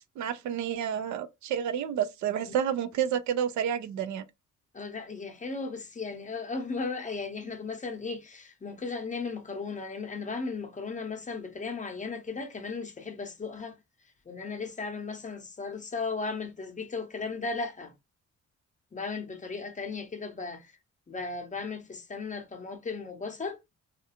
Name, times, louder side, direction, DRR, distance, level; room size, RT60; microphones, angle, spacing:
voice 1, 0.2-4.2, right 9 dB, 70° right, 0.4 m, -30 dB
voice 2, 4.7-13.8 14.3-17.9 18.9-20.7 21.1-23.6, left 4 dB, 25° left, 0.7 m, -36 dB
2.4 x 2.2 x 2.7 m
cardioid pair, 90°, 30 cm